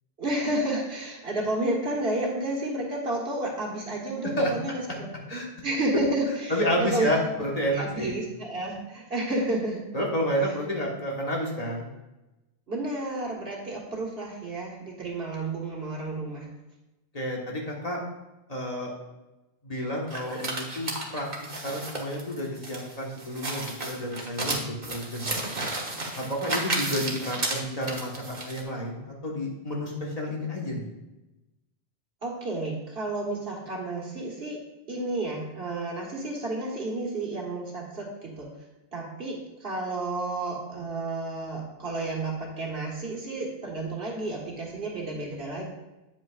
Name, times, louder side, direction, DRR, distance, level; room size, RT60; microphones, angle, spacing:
voice 1, 0.2-7.3 7.7-9.8 12.7-16.5 26.6-27.0 32.2-34.6 34.9-38.5 38.9-45.7, right 2 dB, 70° right, -2 dB, 1.9 m, -31 dB
voice 2, 6.5-8.2 9.9-11.9 17.1-18.0 18.5-18.9 19.6-25.7 26.1-30.9, equal, 40° left, -2 dB, 1.5 m, -30 dB
sound 1, 20.1-28.6, right 2 dB, 45° right, 1.4 m, -33 dB
9.1 x 8.2 x 2.5 m, 1.0 s
omnidirectional pair, 1.0 m